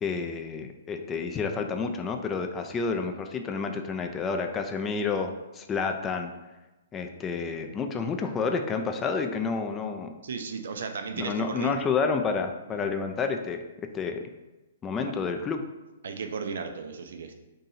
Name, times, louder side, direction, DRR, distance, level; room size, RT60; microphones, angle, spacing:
voice 1, 0.0-6.3 6.9-10.1 11.2-13.6 13.9-14.2 14.8-15.6, left 5 dB, 20° left, 5 dB, 0.3 m, -29 dB
voice 2, 10.2-11.7 12.7-12.8 16.0-17.3, right 5 dB, 65° right, 6 dB, 0.4 m, -35 dB
2.7 x 2.6 x 4.0 m, 1.1 s
hypercardioid pair, 125°, 0 cm